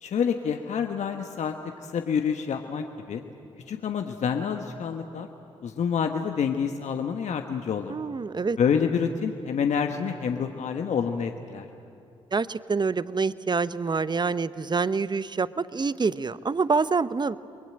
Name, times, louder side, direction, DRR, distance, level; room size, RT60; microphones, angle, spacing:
voice 1, 0.0-1.5 1.8-3.2 3.7-5.3 5.6-7.9 8.6-11.7, left 7 dB, 60° left, 5 dB, 1.3 m, -27 dB
voice 2, 7.9-8.6 12.3-17.4, right 4 dB, 35° right, 16 dB, 0.9 m, -26 dB
29.0 x 22.0 x 9.1 m, 2.7 s
hypercardioid pair, 40°, 13 cm